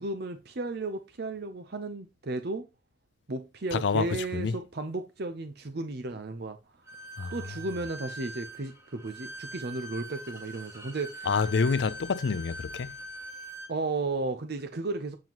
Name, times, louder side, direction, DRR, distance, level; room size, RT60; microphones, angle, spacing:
voice 1, 0.0-2.7 3.3-6.8 7.3-11.3 13.7-15.2, right 3 dB, 55° right, 0.7 m, -34 dB
voice 2, 3.7-4.6 7.2-7.4 11.3-13.0, left 5 dB, 65° left, 0.4 m, -27 dB
Bowed string instrument, 6.9-13.7, right 1 dB, 15° right, 1.5 m, -42 dB
7.6 x 7.2 x 3.0 m
head